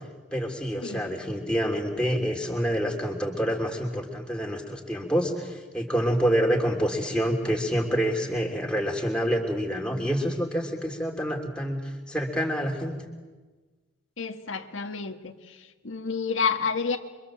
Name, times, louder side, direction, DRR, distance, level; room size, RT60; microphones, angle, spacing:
voice 1, 0.3-12.9, equal, 5° left, 0 dB, 3.2 m, -27 dB
voice 2, 0.8-1.1 14.2-15.6 15.8-17.0, left 5 dB, 80° left, 5 dB, 1.6 m, -29 dB
28.5 x 24.5 x 7.6 m, 1.3 s
head